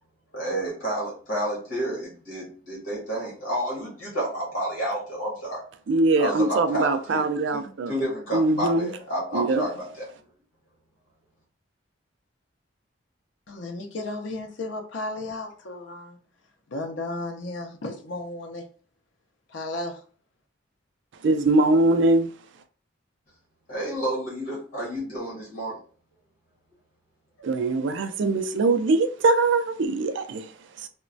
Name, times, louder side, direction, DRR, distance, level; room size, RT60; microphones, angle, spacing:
voice 1, 0.3-5.6 6.2-10.0 23.7-25.8 27.4-27.7, right 1 dB, 45° left, 1.2 m, -30 dB
voice 2, 5.9-7.9 8.3-8.9 9.3-9.6 21.2-22.3 27.4-30.5 30.8-30.9, right 2 dB, 65° right, 0.3 m, -22 dB
voice 3, 13.5-16.2 16.7-18.7 19.5-20.0, left 2 dB, 65° left, 0.5 m, -34 dB
3.0 x 2.1 x 2.5 m
head